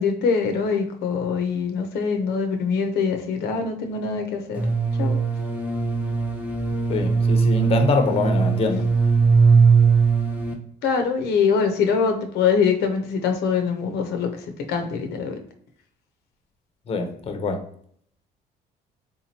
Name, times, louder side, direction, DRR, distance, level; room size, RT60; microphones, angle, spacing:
voice 1, 0.0-4.6 5.0-5.2 10.8-14.3 14.7-15.4, left 5 dB, 75° left, 5 dB, 0.6 m, -23 dB
sound 1, 4.6-10.5, right 5 dB, 10° right, 0.6 m, -20 dB
voice 2, 6.9-8.9 16.9-17.6, left 3 dB, 35° left, 6 dB, 0.6 m, -24 dB
3.6 x 2.9 x 2.8 m, 0.63 s
cardioid pair, 110°, 17 cm